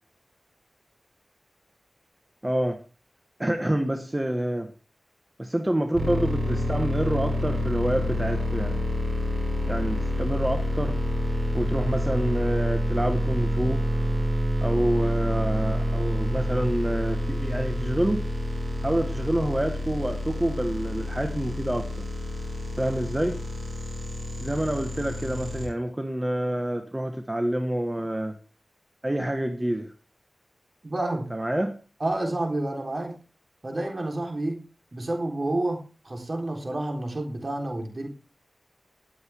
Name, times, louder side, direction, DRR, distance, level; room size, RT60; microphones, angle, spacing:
voice 1, 2.4-2.8 3.4-4.7 5.4-8.8 9.7-11.0 11.5-13.8 14.6-18.2 18.8-21.9 22.8-23.4 24.4-28.3 29.0-29.9 31.3-31.7, right 1 dB, 20° right, 6 dB, 1.3 m, -27 dB
sound 1, 5.9-25.7, equal, 70° right, 7.5 m, -28 dB
voice 2, 30.8-31.3 32.0-33.1 33.6-34.6 34.9-38.1, right 2 dB, 45° right, 2 dB, 3.6 m, -29 dB
18.0 x 8.0 x 3.5 m, 0.36 s
cardioid pair, 45°, 0 cm